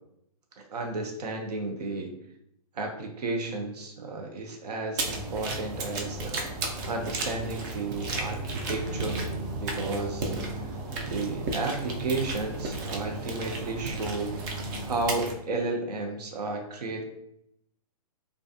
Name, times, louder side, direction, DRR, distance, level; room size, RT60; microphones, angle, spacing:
voice 1, 0.6-2.1 2.7-6.4 6.9-9.2 9.6-10.8 11.0-14.3 14.8-17.1, right 3 dB, 80° right, 2 dB, 0.6 m, -33 dB
sound 1, 5.0-15.3, right 2 dB, 30° right, 0.4 m, -33 dB
2.4 x 2.3 x 2.6 m, 0.76 s
hypercardioid pair, 140°, 20 cm